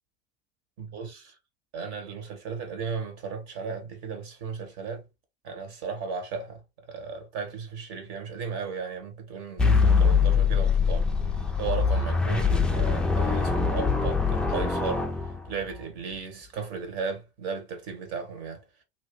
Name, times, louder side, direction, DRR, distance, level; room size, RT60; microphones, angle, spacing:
voice 1, 0.8-1.3 1.7-5.0 5.4-6.6 6.9-11.1 11.6-15.1 15.5-18.6, right 5 dB, 45° right, 1.3 m, -35 dB
sound 1, 9.6-15.8, left 5 dB, 5° left, 0.3 m, -23 dB
2.8 x 2.6 x 3.5 m
figure-of-eight pair, 80°, 34 cm